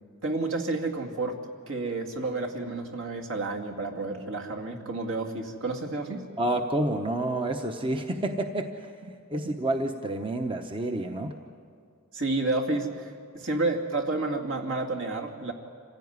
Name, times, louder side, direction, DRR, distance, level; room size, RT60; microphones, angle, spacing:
voice 1, 0.2-1.4 1.7-6.3 9.3-9.5 12.1-15.5, right 2 dB, 65° right, 2 dB, 2.3 m, -30 dB
voice 2, 6.4-8.9 9.3-11.3, right 1 dB, 25° right, 5 dB, 0.9 m, -29 dB
26.5 x 16.0 x 9.5 m, 2.2 s
head